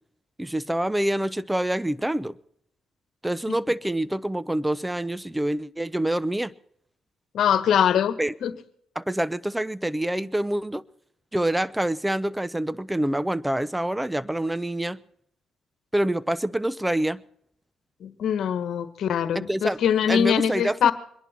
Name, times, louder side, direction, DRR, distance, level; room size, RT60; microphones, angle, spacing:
voice 1, 0.4-2.4 3.2-6.5 8.2-8.3 9.0-10.8 11.3-15.0 15.9-17.2 19.3-19.8 20.1-20.9, right 1 dB, 10° right, 0.6 m, -26 dB
voice 2, 7.3-8.5 18.0-20.9, left 9 dB, 70° left, 1.4 m, -23 dB
24.5 x 11.0 x 4.2 m
cardioid pair, 90°, 0 cm